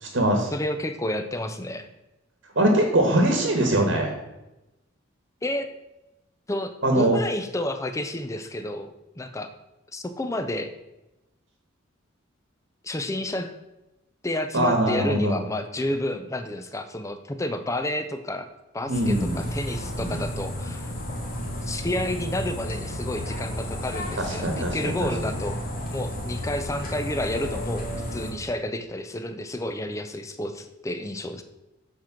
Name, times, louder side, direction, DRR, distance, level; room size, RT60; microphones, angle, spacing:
voice 1, 0.0-0.5 2.5-4.1 6.8-7.2 14.5-15.4 18.9-19.4 20.0-20.2 24.2-25.1, right 1 dB, 65° right, 3 dB, 1.2 m, -22 dB
voice 2, 0.5-1.9 5.4-5.7 6.5-9.5 9.9-10.7 12.8-13.5 14.2-18.5 18.7-20.9 21.6-25.6 25.9-31.4, left 1 dB, 15° left, 9 dB, 0.5 m, -30 dB
sound 1, 18.9-28.3, left 1 dB, 45° left, 1.7 m, -32 dB
7.4 x 4.5 x 5.8 m, 0.97 s
head